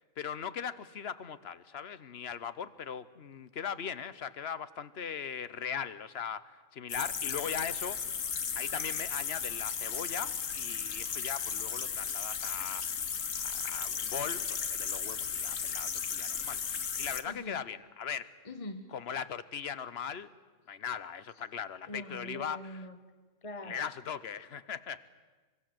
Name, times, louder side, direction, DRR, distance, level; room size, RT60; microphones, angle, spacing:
voice 1, 0.2-8.0 8.5-12.8 13.3-16.6 17.0-18.3 18.9-20.3 20.7-22.8 23.7-25.0, left 7 dB, 55° left, 15 dB, 1.1 m, -39 dB
sound 1, 6.9-17.2, left 7 dB, 80° left, 1.6 m, -35 dB
voice 2, 17.2-17.6 18.4-18.9 21.8-23.0 23.4-23.9, left 1 dB, 25° left, 8 dB, 1.4 m, -43 dB
25.0 x 23.5 x 7.8 m, 1.3 s
omnidirectional pair, 1.3 m